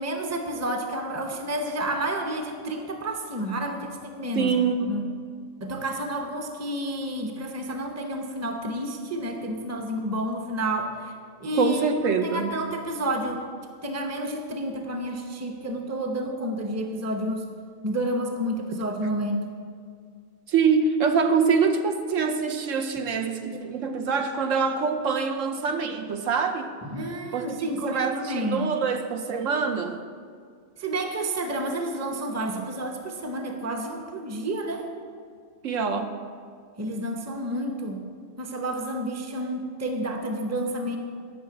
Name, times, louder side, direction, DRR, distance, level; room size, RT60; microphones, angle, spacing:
voice 1, 0.0-5.0 5.6-11.1 11.4-11.8 12.1-13.4 13.8-17.5 17.8-19.4 26.8-28.7 30.8-34.9 36.8-38.0 38.4-41.0, right 1 dB, 15° right, 4 dB, 0.7 m, -30 dB
voice 2, 4.3-5.0 11.5-12.6 20.5-26.7 27.3-30.0 35.6-36.1, right 5 dB, 70° right, 6 dB, 1.0 m, -25 dB
10.5 x 5.7 x 7.9 m, 2.1 s
omnidirectional pair, 1.4 m